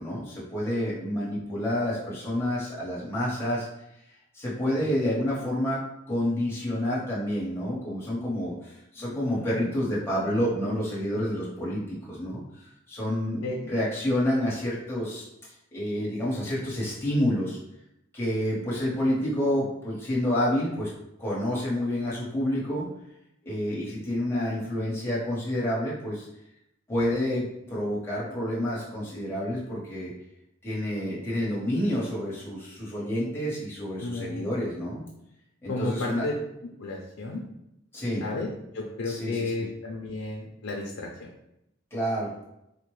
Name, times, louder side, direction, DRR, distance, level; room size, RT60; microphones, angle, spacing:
voice 1, 0.0-3.7 4.3-5.8 6.1-17.6 18.1-20.9 21.2-22.9 23.4-26.3 26.9-30.1 30.6-35.0 35.6-36.2 37.9-38.2 39.1-39.7 41.9-42.3, left 1 dB, 10° left, -7 dB, 1.1 m, -29 dB
voice 2, 4.8-5.1 9.4-9.7 13.4-13.8 34.0-34.5 35.7-36.3 36.8-37.4 38.2-41.3, left 2 dB, 85° left, -2 dB, 0.5 m, -33 dB
4.1 x 2.2 x 3.1 m, 0.83 s
head